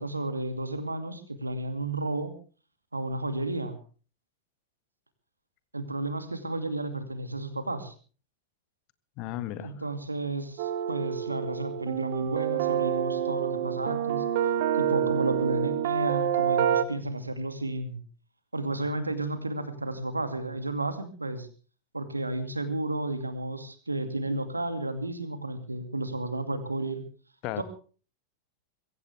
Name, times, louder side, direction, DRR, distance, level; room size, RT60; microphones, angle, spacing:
voice 1, 0.0-2.3 2.9-3.8 5.7-7.9 9.6-14.2 14.7-18.0 18.5-21.5 21.9-27.0 27.6-27.7, right 2 dB, 80° right, 10 dB, 2.3 m, -32 dB
voice 2, 9.2-9.7 27.4-27.6, left 14 dB, 40° left, 13 dB, 1.7 m, -34 dB
sound 1, 10.6-16.8, right 10 dB, 50° right, 1.3 m, -27 dB
23.0 x 16.0 x 3.5 m, 0.39 s
figure-of-eight pair, 90°, 0 cm